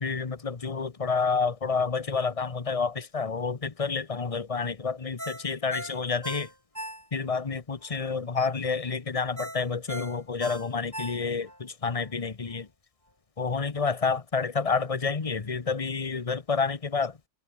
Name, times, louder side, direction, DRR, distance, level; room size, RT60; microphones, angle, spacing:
voice 1, 0.0-5.2 5.4-6.5 7.1-11.5 11.8-12.6 13.4-17.1, left 5 dB, 25° left, 0.8 m, -29 dB
Ringtone, 5.2-7.4 7.8-7.9 9.4-11.6 12.0-12.1, equal, 10° right, 7.3 m, -39 dB
omnidirectional pair, 1.9 m